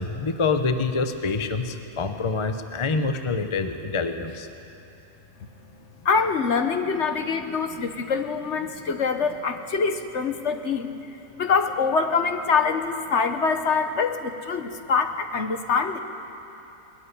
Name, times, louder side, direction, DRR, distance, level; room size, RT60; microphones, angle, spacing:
voice 1, 0.0-4.5, left 4 dB, 25° left, 7 dB, 0.7 m, -26 dB
voice 2, 6.0-16.0, left 5 dB, 55° left, 7 dB, 1.1 m, -25 dB
20.0 x 13.5 x 9.8 m, 3.0 s
omnidirectional pair, 1.6 m